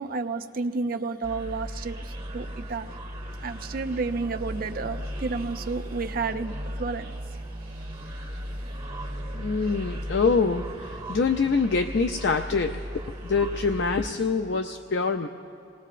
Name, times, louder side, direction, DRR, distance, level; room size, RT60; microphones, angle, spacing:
voice 1, 0.0-3.0 3.4-7.1, right 4 dB, 50° right, 0.5 m, -31 dB
sound 1, 1.2-14.1, equal, 30° right, 1.8 m, -36 dB
voice 2, 9.3-12.8 13.2-15.3, left 4 dB, 60° left, 0.4 m, -25 dB
27.5 x 20.5 x 2.5 m
head